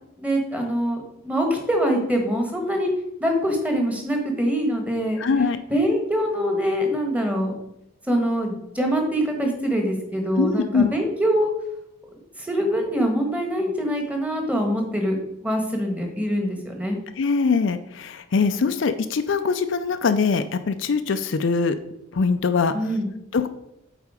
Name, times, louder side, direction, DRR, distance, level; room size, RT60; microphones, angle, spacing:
voice 1, 0.2-2.9 3.2-5.2 5.7-7.5 8.1-11.5 12.4-15.2 15.4-17.0 22.7-23.1, equal, 5° right, 2 dB, 1.2 m, -24 dB
voice 2, 5.2-5.6 10.4-10.9 17.2-21.8 22.1-22.7 23.3-23.5, left 5 dB, 65° left, 9 dB, 0.4 m, -22 dB
8.3 x 4.2 x 4.9 m, 0.81 s
head